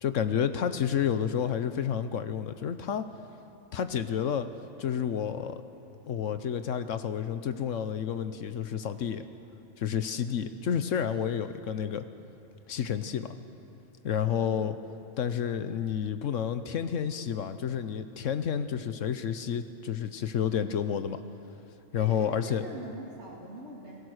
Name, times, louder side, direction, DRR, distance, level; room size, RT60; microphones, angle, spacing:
voice 1, 0.0-3.0 3.7-4.5 4.8-5.6 6.1-9.2 9.8-12.0 12.7-13.3 14.0-14.8 15.2-21.2 21.9-22.6, left 8 dB, 75° left, 10 dB, 1.1 m, -30 dB
voice 2, 14.3-14.6 22.0-24.0, right 1 dB, 55° right, -4 dB, 2.8 m, -44 dB
27.5 x 18.0 x 6.4 m, 2.8 s
omnidirectional pair, 1.4 m